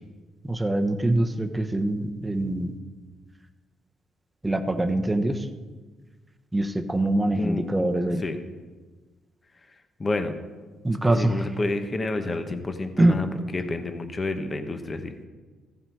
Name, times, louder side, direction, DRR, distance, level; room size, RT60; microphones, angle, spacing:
voice 1, 0.4-2.7 4.4-5.4 6.5-8.2 10.8-11.3 13.0-13.2, right 1 dB, 15° right, 6 dB, 0.9 m, -24 dB
voice 2, 7.4-8.4 10.0-10.4 11.0-13.3 13.5-15.1, left 2 dB, 30° left, 8 dB, 1.0 m, -29 dB
14.5 x 7.4 x 4.7 m, 1.3 s
cardioid pair, 90°, 0 cm